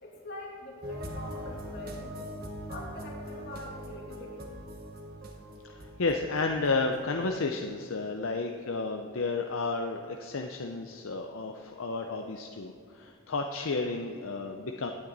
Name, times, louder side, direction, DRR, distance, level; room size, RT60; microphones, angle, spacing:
voice 1, 0.0-2.2 2.7-4.4, left 1 dB, 50° left, -2 dB, 2.4 m, -44 dB
sound 1, 0.8-7.2, equal, 45° right, 1.3 m, -42 dB
voice 2, 5.7-14.9, left 3 dB, 70° left, 4 dB, 0.6 m, -32 dB
16.5 x 8.8 x 4.1 m, 2.3 s
head